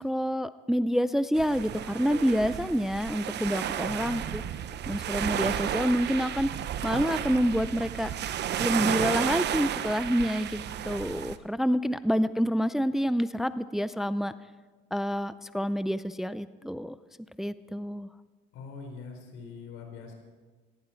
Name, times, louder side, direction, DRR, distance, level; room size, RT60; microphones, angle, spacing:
voice 1, 0.0-4.4 4.9-6.5 6.8-8.1 8.6-14.3 14.9-17.0 17.4-18.1, equal, ahead, 14 dB, 0.5 m, -28 dB
sound 1, 1.3-11.4, right 10 dB, 55° right, 1.0 m, -32 dB
voice 2, 3.8-4.5 18.5-20.1, left 3 dB, 80° left, 3 dB, 4.3 m, -43 dB
18.0 x 17.0 x 4.6 m, 1.3 s
supercardioid pair, 90°, 20 cm